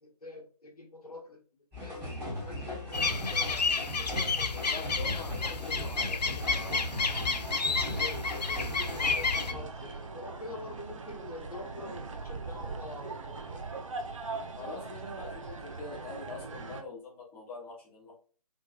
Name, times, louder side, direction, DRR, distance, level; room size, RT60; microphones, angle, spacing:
voice 1, 0.0-1.4 1.8-2.1 2.4-3.6 4.0-4.7 5.1-5.6 7.9-13.7, left 2 dB, 65° left, 0 dB, 1.2 m, -45 dB
sound 1, 1.7-9.6, left 1 dB, 10° right, 1.3 m, -39 dB
sound 2, 2.9-9.5, left 4 dB, 80° left, 0.5 m, -30 dB
voice 2, 4.4-6.9 7.2-7.5 14.6-18.1, left 3 dB, 10° left, -6 dB, 0.6 m, -44 dB
sound 3, 6.4-16.8, right 3 dB, 50° right, 0.6 m, -41 dB
3.5 x 3.2 x 2.2 m, 0.39 s
figure-of-eight pair, 140°, 21 cm